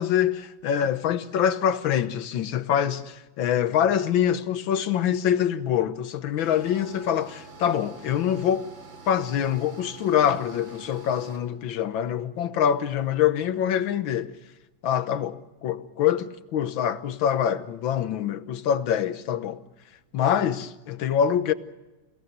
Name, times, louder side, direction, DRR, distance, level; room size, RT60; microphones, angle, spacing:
voice 1, 0.0-8.7 9.1-14.4 14.8-19.6 20.1-21.5, left 9 dB, 80° left, 1.8 m, -25 dB
sound 1, 6.4-11.4, right 4 dB, 75° right, 4.2 m, -46 dB
28.0 x 17.5 x 7.9 m
omnidirectional pair, 2.1 m